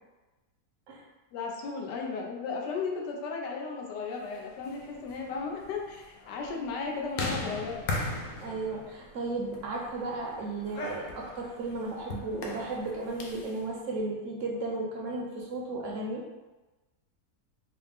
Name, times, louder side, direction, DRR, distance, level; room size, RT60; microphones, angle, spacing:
voice 1, 1.3-7.9, left 4 dB, 85° left, 0 dB, 1.2 m, -35 dB
sound 1, 4.5-13.6, left 2 dB, 65° left, 0.8 m, -39 dB
voice 2, 8.4-16.2, right 2 dB, 60° right, -2 dB, 0.8 m, -34 dB
4.0 x 2.0 x 3.4 m, 1.1 s
omnidirectional pair, 1.8 m